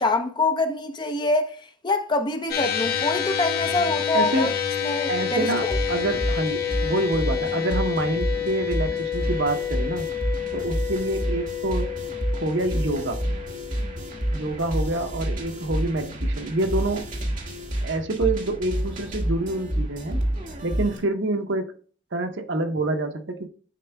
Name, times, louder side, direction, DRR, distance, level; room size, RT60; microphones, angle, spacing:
voice 1, 0.0-4.5 4.8-5.8, left 2 dB, 25° left, 0.7 m, -25 dB
sound 1, 2.5-15.0, left 9 dB, 55° left, 1.4 m, -29 dB
voice 2, 4.1-4.5 5.1-10.1 10.5-11.9 12.3-13.2 14.3-17.1 17.8-20.2 20.6-21.8 22.1-23.5, right 2 dB, 70° right, 1.0 m, -27 dB
sound 2, 5.5-21.0, right 1 dB, 45° right, 1.7 m, -29 dB
10.5 x 4.4 x 2.2 m
head